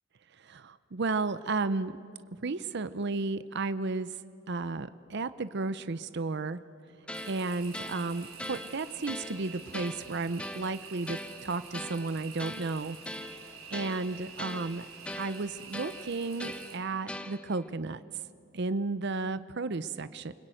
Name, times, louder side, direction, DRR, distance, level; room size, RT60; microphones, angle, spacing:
voice 1, 0.4-1.9 2.4-4.1 4.5-6.6 7.3-13.0 13.4-14.8 15.2-18.0 18.5-20.3, right 3 dB, 55° right, 14 dB, 0.7 m, -33 dB
sound 1, 7.1-17.7, left 1 dB, 5° left, 0.9 m, -42 dB
sound 2, 7.1-16.8, right 6 dB, 80° right, 3.7 m, -48 dB
28.5 x 21.0 x 9.1 m, 2.3 s
head